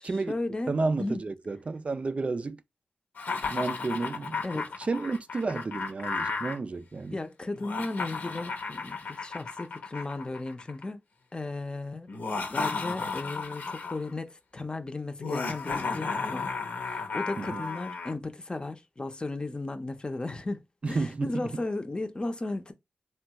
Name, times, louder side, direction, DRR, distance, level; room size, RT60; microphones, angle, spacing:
voice 1, 0.0-0.7 1.0-1.2 4.4-4.7 7.1-11.0 11.3-12.1 12.5-20.6 20.9-22.7, left 2 dB, 30° left, 0.6 m, -35 dB
voice 2, 0.7-2.6 3.5-4.4 4.9-7.2 17.4-17.6 20.8-21.4, right 3 dB, 45° right, 0.3 m, -31 dB
Laughter, 3.2-6.6 7.5-10.8 12.1-14.1 15.2-18.1, left 4 dB, 75° left, 0.8 m, -34 dB
3.2 x 2.3 x 2.8 m
cardioid pair, 65°, 3 cm